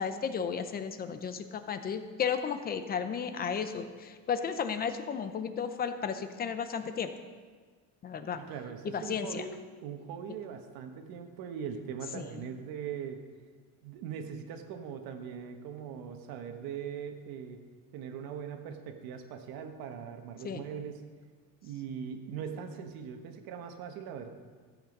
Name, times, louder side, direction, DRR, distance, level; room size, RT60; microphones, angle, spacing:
voice 1, 0.0-7.1 8.0-8.4 8.8-9.4 12.1-12.4 20.4-20.7, left 7 dB, 25° left, 9 dB, 0.6 m, -34 dB
voice 2, 8.4-9.6 9.8-13.2 13.8-17.6 17.9-21.0 21.6-24.3, right 7 dB, 85° right, 5 dB, 1.4 m, -41 dB
14.0 x 8.0 x 5.3 m, 1.5 s
cardioid pair, 175°, 35 cm